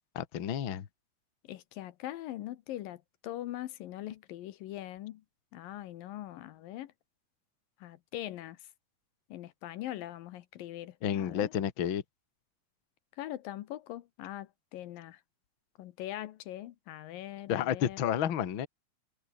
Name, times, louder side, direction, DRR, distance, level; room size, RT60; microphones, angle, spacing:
voice 1, 0.1-0.9 11.0-12.0 17.5-18.7, left 9 dB, 50° left, 1.6 m, -31 dB
voice 2, 1.4-5.2 5.5-6.9 7.8-8.6 9.3-11.5 13.2-15.2 15.8-18.0, left 14 dB, 75° left, 2.6 m, -42 dB
omnidirectional pair, 4.3 m